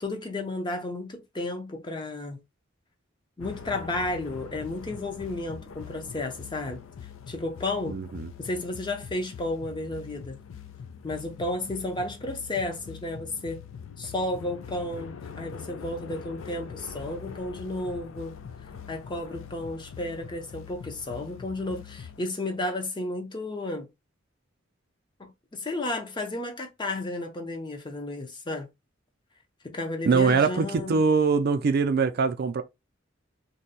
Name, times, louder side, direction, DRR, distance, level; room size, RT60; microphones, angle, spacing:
voice 1, 0.0-2.4 3.4-6.8 7.3-8.0 8.4-10.4 11.0-13.6 14.0-18.4 18.9-23.9 25.2-28.7 29.6-31.0, left 2 dB, 25° left, 0.6 m, -33 dB
sound 1, 3.4-22.2, left 7 dB, 80° left, 0.4 m, -43 dB
voice 2, 7.9-8.3 30.1-32.6, right 5 dB, 55° right, 0.4 m, -23 dB
2.7 x 2.2 x 3.9 m
head